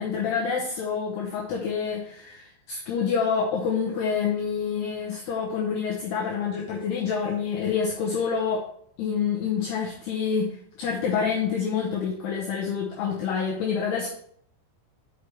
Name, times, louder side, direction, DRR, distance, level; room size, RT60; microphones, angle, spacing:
voice 1, 0.0-8.7 9.0-14.1, left 6 dB, 85° left, -3 dB, 2.3 m, -27 dB
6.3 x 5.9 x 4.5 m, 0.65 s
omnidirectional pair, 5.9 m